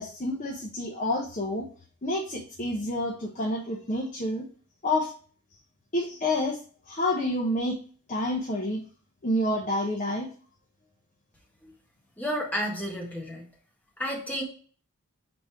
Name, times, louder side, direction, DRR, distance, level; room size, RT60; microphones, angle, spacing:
voice 1, 0.0-1.7 2.0-4.4 4.8-5.1 5.9-6.6 6.9-7.8 8.1-8.8 9.2-10.3, left 1 dB, 35° left, -1 dB, 1.0 m, -28 dB
voice 2, 12.2-13.5 14.0-14.4, equal, 5° left, -1 dB, 1.5 m, -31 dB
5.2 x 4.0 x 4.6 m, 0.41 s
head